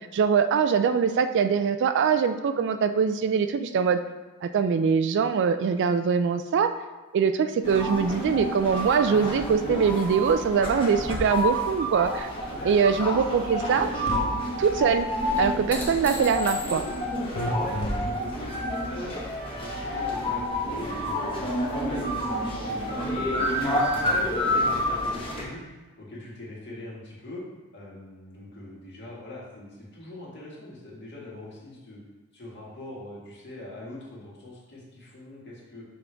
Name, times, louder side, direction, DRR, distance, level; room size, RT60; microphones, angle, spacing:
voice 1, 0.1-4.0 4.4-6.7 7.1-12.3 12.6-13.9 14.6-15.1 15.4-16.8, right 6 dB, 55° right, 10 dB, 0.3 m, -23 dB
sound 1, 7.6-25.4, left 1 dB, 25° left, 1.1 m, -29 dB
sound 2, 8.8-12.3 12.7-13.3 15.4-17.2 19.8-19.9, left 2 dB, 10° left, 0.7 m, -42 dB
voice 2, 12.6-13.1 17.6-19.1 19.5-25.6 26.0-27.4 27.7-32.0 32.3-35.8, left 1 dB, 50° left, -5 dB, 1.8 m, -42 dB
sound 3, 13.6-14.2 17.4-18.5, left 1 dB, 80° left, 0.9 m, -32 dB
6.0 x 5.2 x 3.4 m, 1.2 s
head